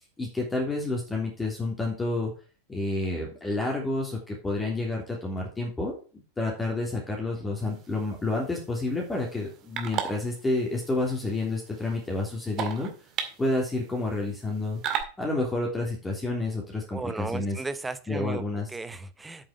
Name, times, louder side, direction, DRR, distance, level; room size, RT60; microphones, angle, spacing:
voice 1, 0.2-2.3 2.7-5.9 6.4-12.9 13.4-14.8 15.2-17.6 18.1-18.7, left 2 dB, 10° left, -1 dB, 3.3 m, -29 dB
sound 1, 7.6-15.0, right 9 dB, 35° right, 2.1 m, -38 dB
voice 2, 16.9-18.4 18.7-19.5, right 3 dB, 10° right, 12 dB, 0.9 m, -35 dB
8.7 x 7.6 x 5.1 m, 0.35 s
figure-of-eight pair, 90°, 0 cm